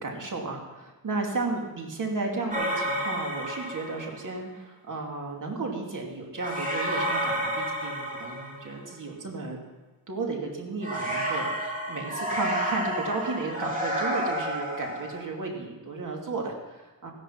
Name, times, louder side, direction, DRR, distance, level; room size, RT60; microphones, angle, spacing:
voice 1, 0.0-9.6 10.1-17.1, right 3 dB, 60° right, 1 dB, 2.8 m, -34 dB
sound 1, 2.5-4.3 6.4-8.9 10.8-15.2, equal, 20° right, 3.0 m, -30 dB
16.0 x 10.5 x 6.0 m, 1.1 s
wide cardioid pair, 130°, 36 cm